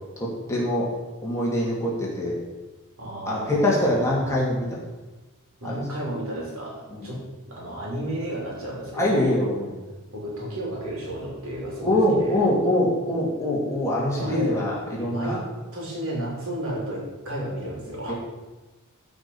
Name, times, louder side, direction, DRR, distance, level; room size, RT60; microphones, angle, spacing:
voice 1, 0.2-0.9 1.2-2.3 3.3-4.8 5.6-5.7 6.9-7.1 8.9-9.7 11.8-15.4 18.1-18.2, left 1 dB, 15° left, -5 dB, 2.6 m, -24 dB
voice 2, 3.0-4.4 5.6-9.4 10.1-12.4 14.2-14.7 15.1-15.4 15.7-18.1, right 1 dB, 65° right, -2 dB, 3.5 m, -33 dB
14.5 x 5.2 x 5.6 m, 1.2 s
head